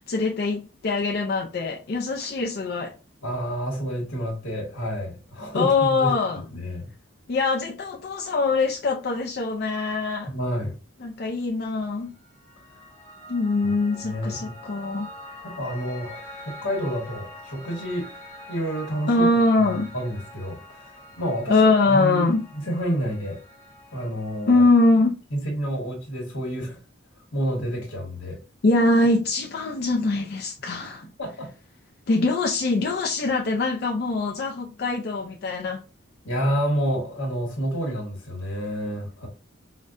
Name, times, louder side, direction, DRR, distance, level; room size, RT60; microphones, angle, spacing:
voice 1, 0.0-2.9 5.5-6.4 7.3-10.3 11.0-12.1 13.3-15.1 19.1-19.9 21.5-22.5 24.5-25.1 28.6-31.0 32.1-35.8, left 3 dB, 50° left, 0.4 m, -23 dB
voice 2, 3.2-6.1 6.5-6.9 10.3-10.7 14.0-14.6 15.6-18.1 18.5-19.3 19.6-21.6 21.9-22.3 22.5-23.4 23.9-24.6 25.3-26.8 27.3-28.4 31.2-31.5 36.2-39.3, equal, 75° left, 1.2 m, -29 dB
Piano, 12.2-24.5, left 1 dB, 10° left, 0.8 m, -45 dB
5.0 x 2.1 x 2.5 m
head